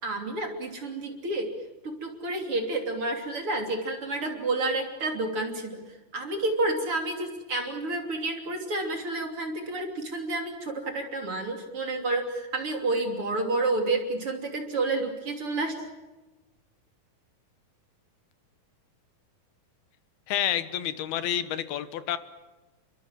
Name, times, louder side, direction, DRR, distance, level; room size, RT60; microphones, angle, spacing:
voice 1, 0.0-1.5 1.8-5.8 6.1-15.8, right 2 dB, 40° right, 4 dB, 3.5 m, -30 dB
voice 2, 20.3-22.2, left 11 dB, 80° left, 12 dB, 3.2 m, -29 dB
30.0 x 22.5 x 7.6 m, 1.1 s
omnidirectional pair, 4.4 m